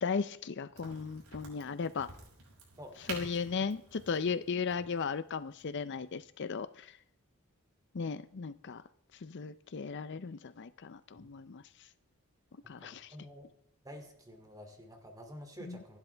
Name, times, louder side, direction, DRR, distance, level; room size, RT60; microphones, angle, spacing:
voice 1, 0.0-2.1 3.1-7.0 7.9-8.8 9.2-11.9 12.7-13.1 15.6-15.8, left 5 dB, 50° left, 14 dB, 0.5 m, -36 dB
Crack, 0.7-6.2, right 3 dB, 80° right, 6.0 m, -49 dB
voice 2, 2.8-3.3 11.2-11.3 12.8-13.5 13.8-16.0, equal, 15° right, 4 dB, 2.5 m, -49 dB
26.5 x 12.0 x 3.4 m, 0.73 s
head